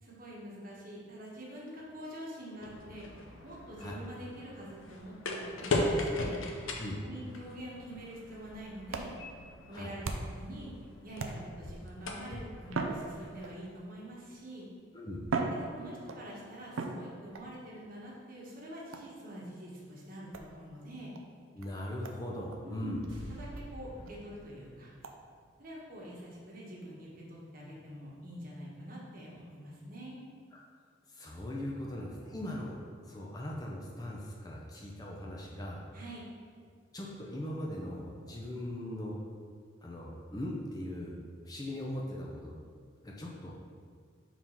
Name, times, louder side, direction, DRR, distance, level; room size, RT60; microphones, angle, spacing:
voice 1, 0.0-3.1 3.4-6.4 7.0-9.2 9.7-10.7 11.0-14.7 15.5-21.1 22.6-23.0 23.4-24.9 25.6-30.2 35.9-36.3, right 1 dB, 45° right, -4 dB, 1.2 m, -46 dB
sound 1, 2.6-13.5, left 2 dB, 85° left, 0.7 m, -39 dB
sound 2, 8.4-10.5 11.2-11.8 12.7-13.8 14.6-14.7 15.2-16.3 16.8-17.5 18.9-19.2 20.3-20.5 21.1-21.2 21.6-21.7 22.0-22.2 22.5-22.6 23.0-23.1 23.6-23.7 24.1-24.2 25.0-25.2, right 3 dB, 85° right, 0.5 m, -38 dB
voice 2, 21.5-23.0 30.5-30.6 31.1-32.8 33.1-35.9 36.9-39.2 39.8-41.1 41.4-42.6 43.0-43.5, left 1 dB, 20° left, -2 dB, 0.5 m, -39 dB
sound 3, 23.1-26.3 26.5-26.6, right 1 dB, 70° right, 1.3 m, -49 dB
4.8 x 3.7 x 5.5 m, 2.1 s
head